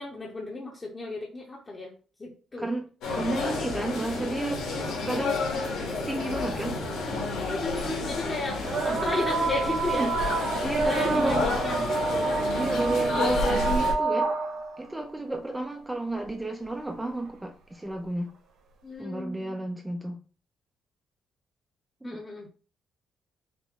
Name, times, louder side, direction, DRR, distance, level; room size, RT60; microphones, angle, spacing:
voice 1, 0.0-1.9 2.2-2.7 7.5-10.1 10.7-11.9 18.8-19.6 22.0-22.5, left 2 dB, 20° left, -2 dB, 0.8 m, -34 dB
voice 2, 2.6-4.7 5.0-5.5 6.0-6.8 8.9-9.1 10.0-10.2 10.6-11.5 12.6-14.3 14.8-18.3 19.0-20.2 22.0-22.2, right 2 dB, 5° right, 3 dB, 0.4 m, -31 dB
sound 1, 3.0-13.9, left 3 dB, 80° left, 1.7 m, -30 dB
sound 2, 8.6-14.8 16.2-16.3 17.2-17.3, right 4 dB, 60° right, 1.1 m, -28 dB
5.8 x 2.1 x 3.6 m, 0.38 s
cardioid pair, 155°, 0 cm